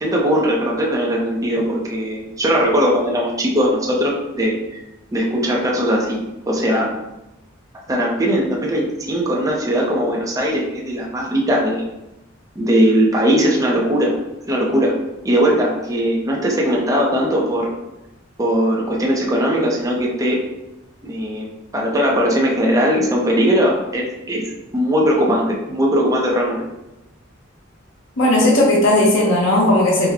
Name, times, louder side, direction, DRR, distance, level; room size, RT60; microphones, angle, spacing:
voice 1, 0.0-4.8 5.1-6.9 7.9-11.8 12.6-14.1 14.5-14.9 15.2-17.7 18.4-20.4 21.0-21.5 21.7-24.4 24.7-26.6, equal, 15° right, -3 dB, 0.6 m, -19 dB
voice 2, 28.2-30.1, left 1 dB, 70° left, -3 dB, 0.9 m, -15 dB
4.7 x 2.2 x 3.5 m, 0.96 s
head